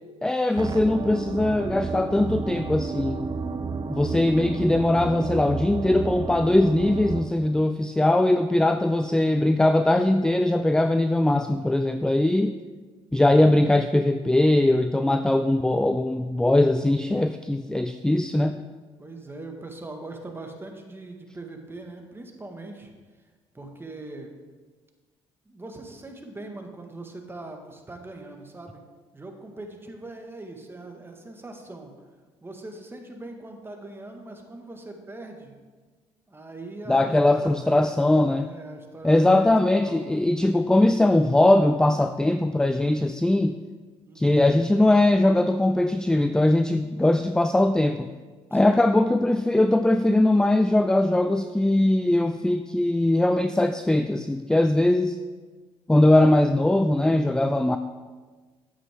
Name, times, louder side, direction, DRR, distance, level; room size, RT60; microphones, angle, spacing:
voice 1, 0.2-3.3 3.9-12.6 13.1-18.6 36.9-38.5 39.0-43.6 44.2-48.1 48.5-55.2 55.9-57.8, left 1 dB, 5° left, 10 dB, 0.4 m, -21 dB
sound 1, 0.6-7.2, right 4 dB, 35° right, 0.6 m, -31 dB
voice 2, 19.0-22.9 23.5-24.3 25.4-28.8 29.1-31.9 32.4-35.5 36.3-38.0 38.4-40.1 44.0-44.4 48.5-48.9, right 2 dB, 20° right, 3 dB, 1.6 m, -41 dB
9.5 x 8.3 x 3.6 m, 1.4 s
supercardioid pair, 70°, 12 cm